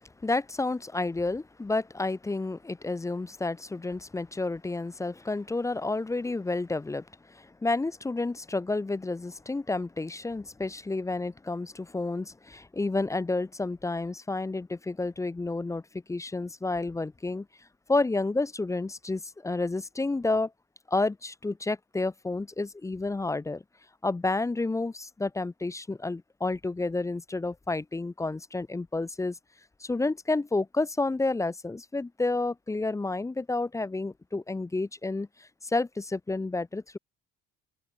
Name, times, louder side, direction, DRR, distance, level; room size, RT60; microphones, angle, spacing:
voice 1, 0.2-15.8 16.1-17.5 17.9-20.5 20.9-23.6 24.0-29.4 29.8-37.0, left 3 dB, 10° left, 0.4 m, -30 dB
supercardioid pair, 75°, 29 cm